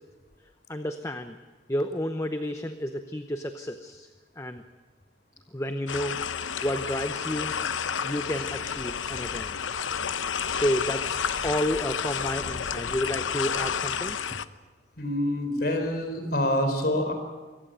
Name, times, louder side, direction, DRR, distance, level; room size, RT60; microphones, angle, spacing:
voice 1, 0.7-1.4 1.7-4.1 4.4-4.6 5.5-7.5 8.0-9.6 10.5-14.4, left 1 dB, 15° left, 7 dB, 0.8 m, -31 dB
sound 1, 5.9-14.4, left 7 dB, 80° left, 0.8 m, -31 dB
voice 2, 15.0-17.1, left 1 dB, 50° left, 6 dB, 4.2 m, -26 dB
24.5 x 15.5 x 9.3 m, 1.3 s
head